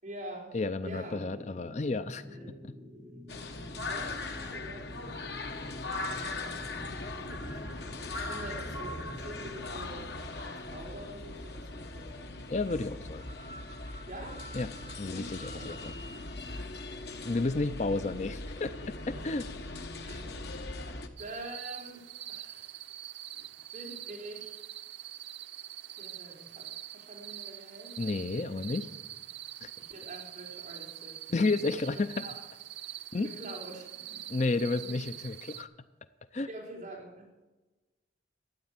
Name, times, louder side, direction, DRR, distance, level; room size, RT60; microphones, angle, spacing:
voice 1, 0.0-0.5 0.8-1.2 2.3-2.5 3.9-5.3 7.1-12.9 14.1-14.4 15.1-15.7 16.1-16.3 19.2-19.3 20.1-20.4 21.2-22.8 23.7-24.6 26.0-28.0 29.8-31.2 31.7-32.3 33.2-34.2 34.8-34.9 36.5-37.3, right 1 dB, 40° right, -2 dB, 4.3 m, -46 dB
voice 2, 0.5-2.4 2.6-2.7 12.5-13.3 14.5-14.7 15.0-15.9 17.2-18.7 19.1-19.5 28.0-28.9 29.6-29.7 31.3-32.2 33.1-33.3 34.3-35.7 36.3-36.5, left 3 dB, 40° left, 13 dB, 0.5 m, -31 dB
sound 1, 0.9-9.5, left 1 dB, 60° right, 5.8 m, -48 dB
sound 2, 3.3-21.1, left 2 dB, 70° left, 1.4 m, -40 dB
sound 3, 21.2-35.6, right 12 dB, 80° right, 0.8 m, -44 dB
13.5 x 9.1 x 8.9 m, 1.1 s
head